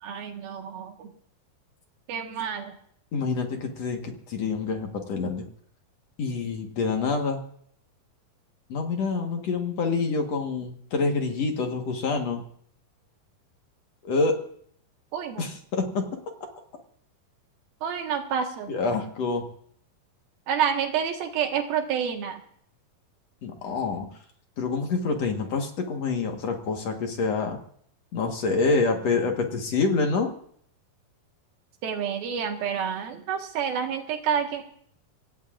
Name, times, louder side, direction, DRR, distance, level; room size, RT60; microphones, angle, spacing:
voice 1, 0.0-1.1 2.1-2.8 15.1-15.5 17.8-18.7 20.5-22.4 31.8-34.6, right 7 dB, 85° right, 4 dB, 3.4 m, -28 dB
voice 2, 3.1-5.5 6.2-7.4 8.7-12.4 14.0-14.4 15.4-16.1 18.7-19.4 23.4-24.1 24.6-27.6 28.1-30.3, left 4 dB, 55° left, 3 dB, 2.3 m, -27 dB
25.5 x 17.0 x 2.5 m, 0.63 s
omnidirectional pair, 4.1 m